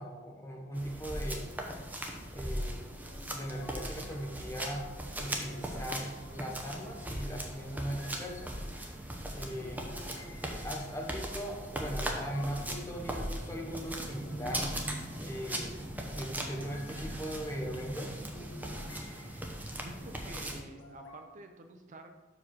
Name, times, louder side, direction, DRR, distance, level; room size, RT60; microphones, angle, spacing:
voice 1, 0.0-1.5 2.3-2.8 3.3-4.9 5.2-8.5 9.3-9.8 10.6-14.7 15.2-15.7 16.1-18.2, equal, 15° left, 1 dB, 1.1 m, -39 dB
sound 1, 0.7-20.6, right 1 dB, 10° right, 0.8 m, -39 dB
sound 2, 3.0-19.4 20.5-21.3, left 2 dB, 80° left, 1.4 m, -54 dB
voice 2, 19.8-22.1, right 2 dB, 40° right, 6 dB, 0.5 m, -49 dB
5.4 x 5.0 x 6.2 m, 1.2 s
head